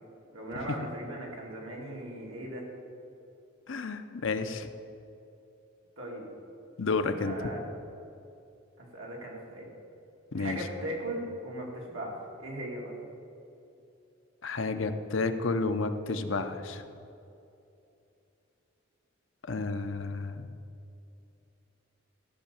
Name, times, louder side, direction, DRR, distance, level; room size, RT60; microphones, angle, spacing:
voice 1, 0.3-2.6 6.0-6.3 7.2-7.6 8.8-9.7 10.4-12.9, right 1 dB, 75° right, -2 dB, 2.6 m, -38 dB
voice 2, 3.7-4.7 6.8-7.4 10.3-10.6 14.4-16.8 19.5-20.5, left 3 dB, 70° left, 8 dB, 0.7 m, -31 dB
14.5 x 5.7 x 6.9 m, 2.7 s
head